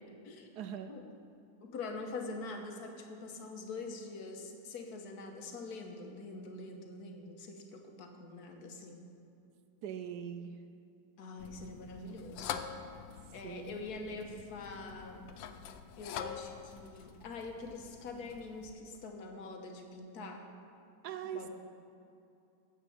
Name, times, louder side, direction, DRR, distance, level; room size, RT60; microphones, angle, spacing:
voice 1, 0.6-0.9 9.8-10.5 13.4-13.7 21.0-21.5, right 9 dB, 75° right, 8 dB, 0.9 m, -41 dB
voice 2, 1.6-9.0 11.2-12.5 13.3-15.2 16.0-20.5 21.3-21.5, left 3 dB, 55° left, 3 dB, 1.5 m, -44 dB
sound 1, 11.4-18.7, left 8 dB, 75° left, 1.2 m, -45 dB
9.9 x 7.3 x 7.1 m, 2.7 s
omnidirectional pair, 2.2 m